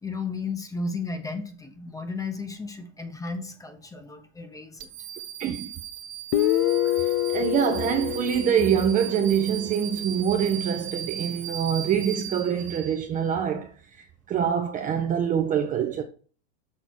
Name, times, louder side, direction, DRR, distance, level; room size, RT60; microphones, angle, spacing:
voice 1, 0.0-4.9, left 4 dB, 10° left, 0.8 m, -34 dB
sound 1, 4.8-13.3, right 10 dB, 60° right, 1.1 m, -38 dB
Guitar, 6.3-9.8, left 14 dB, 35° left, 0.4 m, -26 dB
voice 2, 6.8-13.7 14.0-16.0, right 8 dB, 20° right, 0.6 m, -25 dB
6.4 x 3.9 x 6.0 m
supercardioid pair, 130°, 37 cm